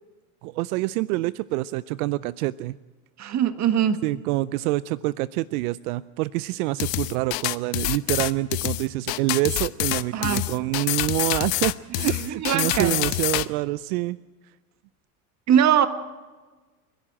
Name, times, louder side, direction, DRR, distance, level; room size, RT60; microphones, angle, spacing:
voice 1, 0.4-2.8 4.0-14.2, right 18 dB, 75° right, 18 dB, 0.6 m, -26 dB
voice 2, 3.2-4.0 10.1-10.5 12.0-13.0 15.5-15.9, right 9 dB, 40° right, 10 dB, 1.6 m, -22 dB
sound 1, 6.8-13.5, left 21 dB, 65° left, 0.9 m, -26 dB
29.5 x 11.5 x 8.8 m, 1.3 s
supercardioid pair, 110°, 44 cm